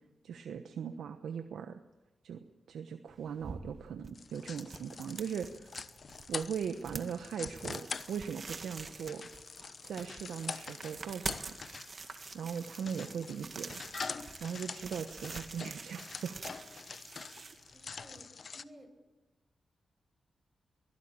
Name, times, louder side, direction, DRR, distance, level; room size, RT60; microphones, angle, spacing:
voice 1, 0.2-1.8 2.2-5.7 6.3-9.3 9.8-11.6 12.3-13.8 14.4-16.4, right 7 dB, 90° right, 8 dB, 1.1 m, -39 dB
sound 1, 3.1-18.2, right 4 dB, 45° right, 1.9 m, -47 dB
sound 2, 4.1-18.6, left 5 dB, 60° left, 0.9 m, -45 dB
voice 2, 17.7-18.9, right 1 dB, 20° right, 4 dB, 7.2 m, -56 dB
23.0 x 17.0 x 8.8 m, 1.1 s
cardioid pair, 60°, 0 cm